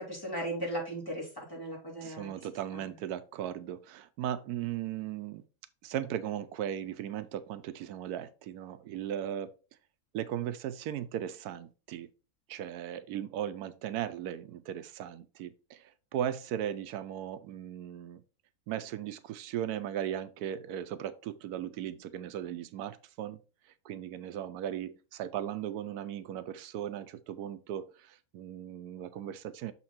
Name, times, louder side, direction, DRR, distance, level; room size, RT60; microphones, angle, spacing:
voice 1, 0.0-2.3 2.7-2.8, right 1 dB, 15° left, 3.3 m, -37 dB
voice 2, 2.0-5.4 5.8-9.5 10.1-12.1 12.5-18.2 18.7-23.4 23.8-29.7, right 10 dB, 85° right, 1.1 m, -37 dB
6.6 x 4.3 x 4.2 m
omnidirectional pair, 1.6 m